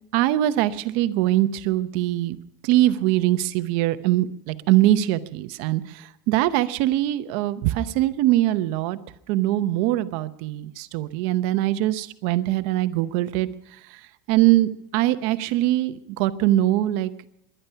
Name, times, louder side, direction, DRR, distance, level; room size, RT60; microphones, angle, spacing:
voice 1, 0.1-2.4 2.6-5.8 6.3-9.0 9.3-13.5 14.3-17.1, right 14 dB, 60° right, 12 dB, 0.8 m, -22 dB
20.5 x 11.0 x 5.6 m, 0.80 s
cardioid pair, 170°, 10 cm